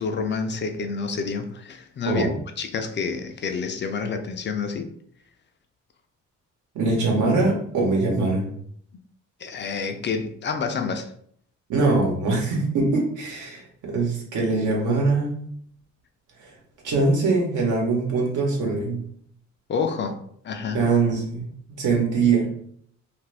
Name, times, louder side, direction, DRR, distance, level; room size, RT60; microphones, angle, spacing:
voice 1, 0.0-2.3 2.6-4.9 9.4-11.1 19.7-20.8, left 5 dB, 40° left, 0.4 m, -28 dB
voice 2, 6.7-8.5 11.7-15.3 16.4-16.5 16.8-19.1 20.7-21.5 21.8-22.6, right 3 dB, 80° right, 1.0 m, -22 dB
2.6 x 2.4 x 3.2 m
cardioid pair, 90°, 30 cm